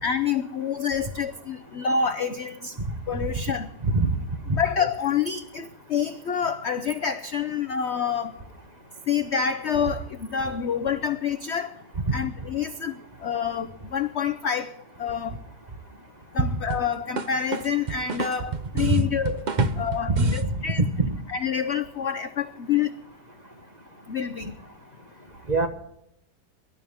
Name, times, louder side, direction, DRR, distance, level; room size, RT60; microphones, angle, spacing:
voice 1, 0.0-2.8 3.1-3.7 4.5-8.4 9.1-11.7 12.1-15.4 16.3-19.5 19.8-20.8 21.3-22.9 24.1-24.5, left 7 dB, 60° left, 8 dB, 0.7 m, -27 dB
sound 1, 16.7-20.5, right 5 dB, 50° right, 0.5 m, -31 dB
voice 2, 20.8-21.1 25.5-25.7, right 2 dB, 25° right, 5 dB, 1.3 m, -22 dB
24.0 x 13.0 x 3.6 m, 0.78 s
omnidirectional pair, 1.9 m